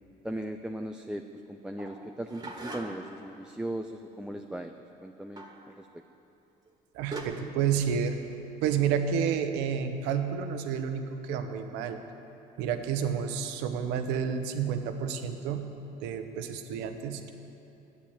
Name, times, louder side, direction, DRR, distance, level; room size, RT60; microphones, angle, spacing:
voice 1, 0.2-4.7 5.0-5.9, right 1 dB, 5° right, 4 dB, 0.5 m, -38 dB
sound 1, 1.8-3.2 5.4-5.7 6.7-6.8 7.1-7.2, right 2 dB, 25° right, 1.7 m, -40 dB
voice 2, 6.9-8.2 8.6-12.0 12.6-15.7 16.0-17.3, right 7 dB, 90° right, 7 dB, 0.9 m, -30 dB
10.0 x 8.2 x 8.7 m, 2.9 s
supercardioid pair, 90°, 17 cm